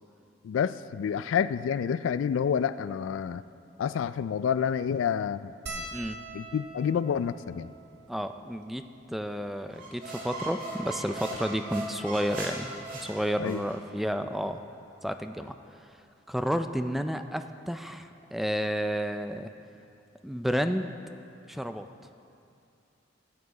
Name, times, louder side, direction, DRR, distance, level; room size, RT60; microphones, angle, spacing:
voice 1, 0.4-3.4 3.8-5.9 6.3-7.7 13.4-13.6, left 7 dB, 85° left, 15 dB, 0.3 m, -29 dB
sound 1, 5.7-10.3 11.0-11.1 11.3-11.5 12.7-13.0 14.4-14.5 14.8-15.0, right 2 dB, 65° right, 1.1 m, -45 dB
voice 2, 8.1-14.6 15.0-15.6 16.3-19.5 20.2-20.9 21.5-21.9, equal, ahead, 8 dB, 0.3 m, -31 dB
sound 2, 9.7-13.8, right 2 dB, 45° right, 2.0 m, -38 dB
15.5 x 8.6 x 4.0 m, 2.6 s
head